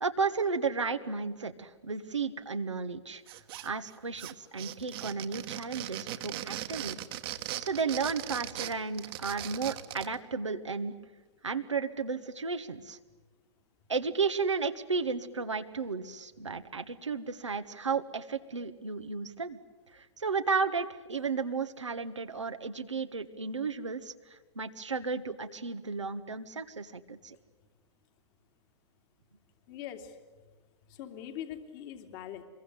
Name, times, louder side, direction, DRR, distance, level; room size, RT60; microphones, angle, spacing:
voice 1, 0.0-3.2 3.6-7.0 7.6-10.9 11.4-13.0 13.9-19.6 19.9-24.1 24.5-27.4, right 4 dB, 90° right, 6 dB, 1.5 m, -33 dB
sound 1, 3.3-3.9 4.2-10.1, right 14 dB, 55° right, 1.6 m, -39 dB
voice 2, 29.7-30.1 30.9-32.4, left 10 dB, 45° left, 6 dB, 2.9 m, -42 dB
25.0 x 22.5 x 9.9 m, 1.3 s
figure-of-eight pair, 105°, 15 cm